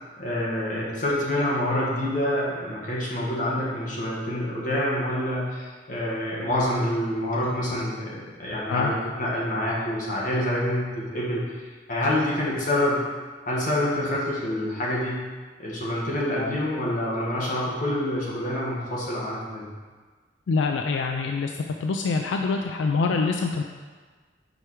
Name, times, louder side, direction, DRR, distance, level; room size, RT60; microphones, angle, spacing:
voice 1, 0.2-13.0 13.4-15.3 15.6-19.7, left 1 dB, 45° left, -5 dB, 1.5 m, -27 dB
voice 2, 20.5-23.6, left 4 dB, 85° left, 3 dB, 0.4 m, -25 dB
5.0 x 4.4 x 4.8 m, 1.4 s
head